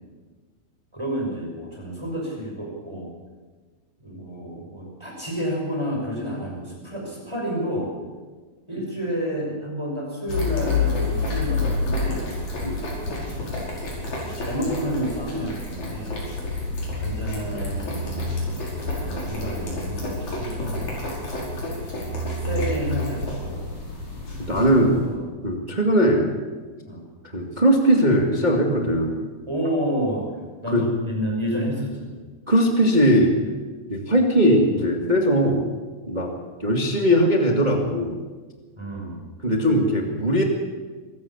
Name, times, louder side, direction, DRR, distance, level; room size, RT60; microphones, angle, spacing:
voice 1, 0.9-3.1 4.0-7.9 8.7-12.3 13.0-13.6 14.2-16.2 16.9-18.3 18.8-20.8 21.6-21.7 22.4-23.7 24.4-25.2 26.9-27.1 29.5-30.3 30.6-32.1 38.8-39.3, equal, 5° right, -1 dB, 5.7 m, -30 dB
sound 1, 10.3-25.1, left 3 dB, 40° left, 6.5 m, -29 dB
voice 2, 24.5-25.0 25.4-26.3 27.3-29.2 30.7-30.8 32.5-33.6 33.9-35.7 36.1-36.3 36.6-38.2 39.4-40.4, equal, 35° right, 2 dB, 0.7 m, -19 dB
25.0 x 15.0 x 7.2 m, 1.4 s
omnidirectional pair, 5.0 m